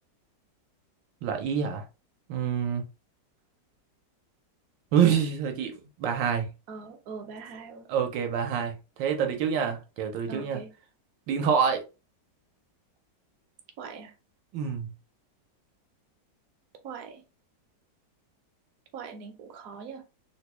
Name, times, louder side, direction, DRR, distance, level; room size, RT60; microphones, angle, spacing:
voice 1, 1.2-1.8 2.3-2.8 4.9-6.5 7.9-10.6 11.3-11.8 14.5-14.9, right 7 dB, 90° right, 1.4 m, -26 dB
voice 2, 6.7-8.1 10.3-10.7 13.8-14.1 16.8-17.2 18.9-20.0, right 5 dB, 60° right, 1.0 m, -42 dB
3.6 x 2.2 x 3.0 m
omnidirectional pair, 1.9 m